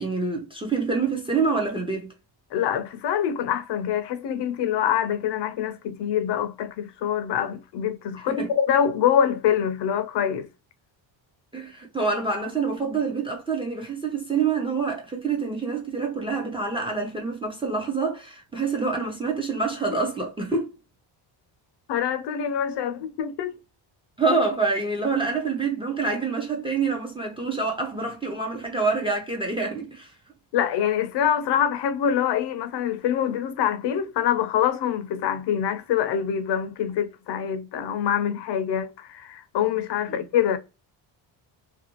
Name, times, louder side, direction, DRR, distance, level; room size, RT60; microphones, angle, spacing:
voice 1, 0.0-2.1 8.3-8.5 11.5-20.7 24.2-30.1 40.1-40.2, right 4 dB, 10° right, 0.4 m, -26 dB
voice 2, 2.5-10.5 19.9-20.0 21.9-23.6 30.5-40.6, left 9 dB, 60° left, 0.5 m, -25 dB
2.5 x 2.1 x 2.9 m
cardioid pair, 160°, 48 cm